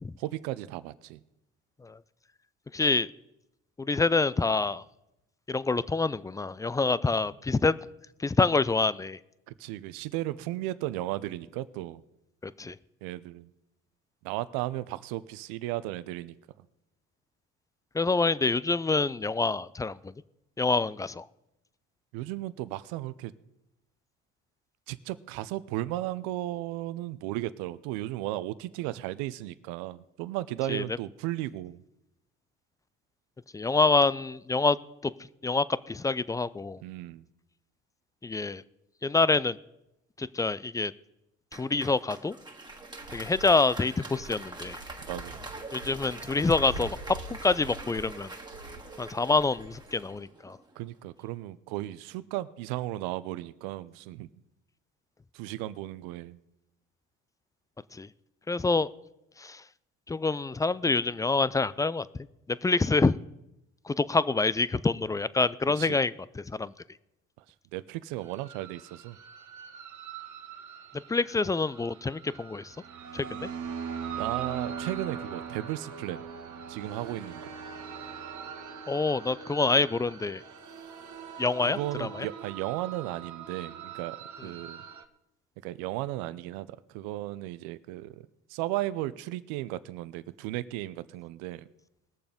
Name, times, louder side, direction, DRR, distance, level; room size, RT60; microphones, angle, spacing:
voice 1, 0.2-1.2 9.5-12.0 13.0-13.5 14.2-16.7 22.1-23.3 24.9-31.8 36.8-37.3 45.0-45.4 50.8-54.3 55.3-56.4 65.8-66.0 67.7-69.2 74.2-76.2 76.7-77.5 81.6-84.8 85.6-88.2 88.5-91.7, right 16 dB, 70° right, 16 dB, 0.7 m, -35 dB
voice 2, 2.7-3.1 3.8-4.8 5.5-7.8 8.2-9.2 12.4-12.8 17.9-20.1 20.6-21.2 30.7-30.8 33.5-35.1 35.4-36.8 38.2-38.6 39.0-39.6 40.2-40.9 41.5-42.4 43.1-44.8 45.7-48.3 49.0-50.6 57.9-58.1 58.5-58.9 59.4-59.6 60.1-62.1 62.5-63.2 63.9-66.7 71.1-72.8 73.1-73.5 78.9-80.4 81.4-82.3, left 3 dB, 10° left, 18 dB, 0.3 m, -26 dB
Applause, 41.5-50.9, right 2 dB, 10° right, 1.9 m, -44 dB
sound 1, 42.6-50.2, right 2 dB, 90° right, 1.8 m, -45 dB
sound 2, 68.2-85.0, right 7 dB, 50° right, 1.5 m, -41 dB
20.0 x 6.9 x 5.1 m, 0.88 s
hypercardioid pair, 65°, 37 cm